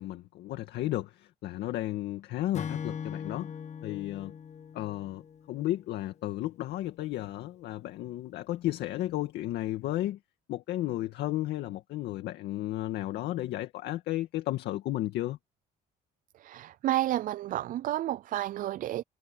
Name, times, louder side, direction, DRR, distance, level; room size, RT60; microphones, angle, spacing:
voice 1, 0.0-3.5 3.8-4.3 4.7-5.2 5.5-10.2 10.5-15.4, left 15 dB, 80° left, 2.1 m, -33 dB
Acoustic guitar / Strum, 2.5-6.0, left 7 dB, 40° left, 1.4 m, -40 dB
voice 2, 16.4-19.0, right 14 dB, 55° right, 0.4 m, -31 dB
cardioid pair, 110°, 17 cm